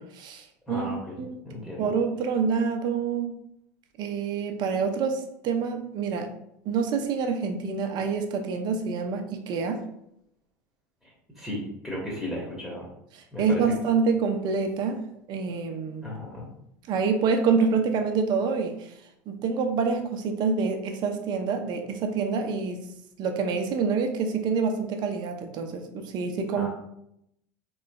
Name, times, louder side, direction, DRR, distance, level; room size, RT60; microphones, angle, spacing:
voice 1, 0.0-0.9 1.2-1.4 1.8-3.3 4.0-6.3 6.7-9.8 13.4-15.0 15.3-16.1 16.9-18.9 19.3-22.8 23.2-26.7, right 5 dB, 50° right, 5 dB, 0.6 m, -27 dB
voice 2, 0.7-1.9 11.0-12.9 13.3-13.6 16.0-16.5 26.5-26.7, left 1 dB, 5° left, -5 dB, 1.1 m, -35 dB
3.2 x 3.0 x 2.3 m, 0.76 s
hypercardioid pair, 90°, 9 cm